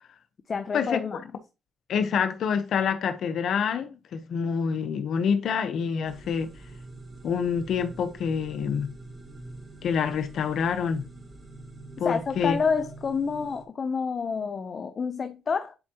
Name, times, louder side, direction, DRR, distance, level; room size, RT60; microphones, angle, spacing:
voice 1, 0.5-1.2 12.0-15.8, left 5 dB, 45° left, 0.7 m, -28 dB
voice 2, 1.9-6.5 7.2-8.9 9.8-11.0 12.0-12.6, left 6 dB, 70° left, 0.9 m, -27 dB
sound 1, 6.0-13.6, right 2 dB, 30° right, 2.5 m, -45 dB
10.5 x 4.6 x 2.9 m
cardioid pair, 90°, 0 cm